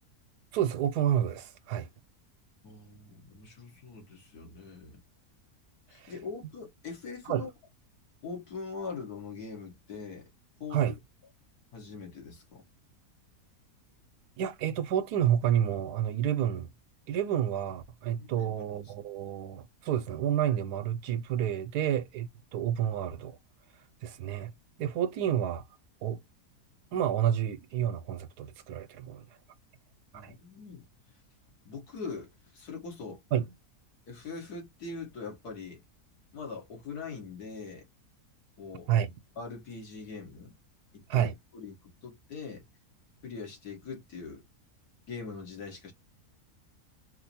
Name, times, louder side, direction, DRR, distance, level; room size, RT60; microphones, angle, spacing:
voice 1, 0.5-1.9 6.0-6.1 7.3-7.5 10.7-11.0 14.4-16.7 17.1-23.3 24.0-24.5 24.8-25.6 26.0-26.2 26.9-29.2 30.1-30.3 33.3-33.5 38.9-39.1 41.1-41.3, right 10 dB, 85° right, 1.2 m, -29 dB
voice 2, 2.6-5.0 5.9-7.5 8.2-10.3 10.6-10.8 11.7-12.6 18.2-18.9 26.1-26.2 30.1-30.8 31.7-33.2 34.1-35.8 36.3-37.9 38.6-38.9 39.4-40.5 40.9-42.6 43.2-44.4 45.1-45.9, left 4 dB, 80° left, 2.2 m, -42 dB
4.6 x 2.2 x 2.7 m
omnidirectional pair, 1.6 m